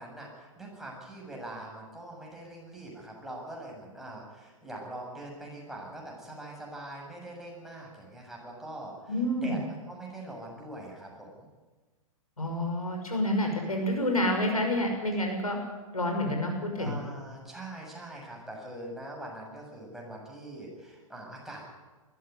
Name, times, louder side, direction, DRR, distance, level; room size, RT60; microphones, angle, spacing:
voice 1, 0.0-11.5 16.8-21.7, right 1 dB, ahead, -2 dB, 7.0 m, -43 dB
voice 2, 9.1-9.6 12.4-15.6 15.9-17.0, left 1 dB, 85° left, 2 dB, 5.8 m, -28 dB
20.5 x 15.0 x 9.5 m, 1.3 s
figure-of-eight pair, 110°, 18 cm